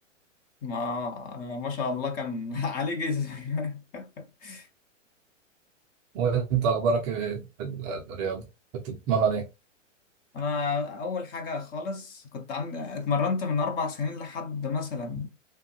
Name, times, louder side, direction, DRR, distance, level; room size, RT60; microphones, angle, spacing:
voice 1, 0.6-4.7 10.3-15.3, left 4 dB, 25° left, 0.6 m, -31 dB
voice 2, 6.1-8.4 8.8-9.4, right 6 dB, 25° right, 0.4 m, -27 dB
3.2 x 2.2 x 2.8 m
hypercardioid pair, 120°, 38 cm